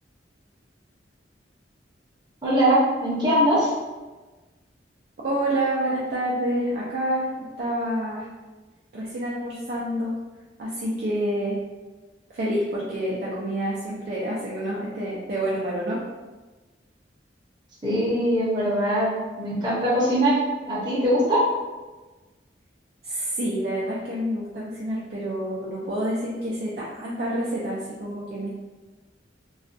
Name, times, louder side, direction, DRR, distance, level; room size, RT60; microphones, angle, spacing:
voice 1, 2.4-3.7 17.8-20.4 20.7-21.4, equal, 25° right, -9 dB, 0.7 m, -21 dB
voice 2, 5.2-8.3 8.9-10.2 10.6-11.6 12.3-16.0 23.0-28.5, right 1 dB, 55° right, -6 dB, 0.4 m, -28 dB
2.3 x 2.2 x 2.5 m, 1.2 s
head